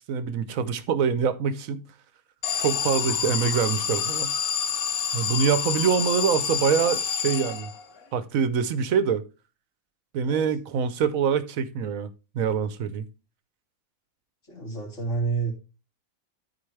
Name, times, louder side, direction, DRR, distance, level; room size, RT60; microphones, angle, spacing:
voice 1, 0.1-1.8 2.6-4.3 5.1-7.7 8.1-9.2 10.1-12.1 12.3-13.1, right 7 dB, 70° right, 1.1 m, -25 dB
Alarm, 2.4-8.0, left 7 dB, 75° left, 1.4 m, -28 dB
voice 2, 14.5-15.5, right 4 dB, 55° left, 3.5 m, -30 dB
13.0 x 4.5 x 3.2 m
omnidirectional pair, 1.5 m